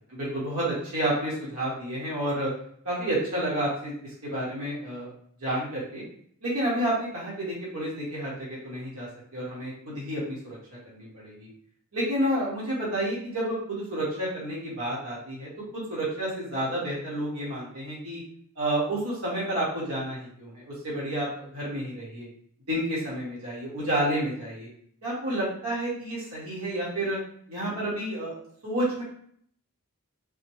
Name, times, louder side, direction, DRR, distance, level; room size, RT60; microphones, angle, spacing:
voice 1, 0.1-2.5 2.8-5.1 5.4-6.0 6.4-10.6 10.8-11.5 11.9-18.2 18.5-22.3 22.7-24.7 25.0-27.2 27.5-29.0, right 1 dB, 75° right, -6 dB, 1.3 m, -30 dB
4.1 x 2.0 x 3.1 m, 0.64 s
head